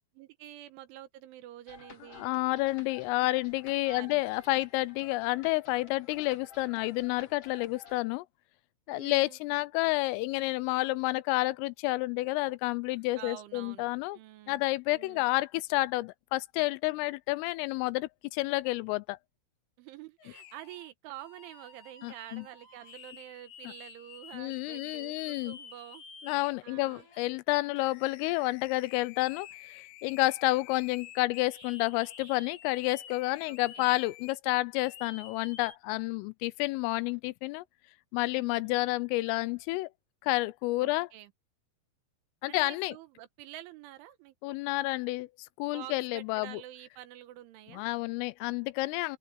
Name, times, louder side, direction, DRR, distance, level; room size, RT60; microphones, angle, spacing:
voice 1, 0.2-2.3 3.9-4.2 8.9-9.4 13.2-13.9 14.1-14.6 14.9-15.3 19.8-26.0 26.6-27.1 33.4-34.0 38.3-38.9 40.8-41.3 42.5-44.6 45.7-47.9, right 14 dB, 75° right, 3.5 m, -48 dB
sound 1, 1.7-8.0, left 6 dB, 35° left, 3.0 m, -53 dB
voice 2, 2.2-8.3 8.9-14.2 14.5-19.2 22.0-22.4 23.6-23.7 24.3-25.6 26.2-37.6 38.1-39.9 40.2-41.1 42.4-43.0 44.4-45.3 45.6-46.6 47.7-49.2, left 20 dB, 90° left, 3.3 m, -30 dB
sound 2, 20.2-20.9 21.2-27.2 27.8-34.4 34.8-35.7, left 8 dB, 70° left, 10.5 m, -50 dB
open air
omnidirectional pair, 5.8 m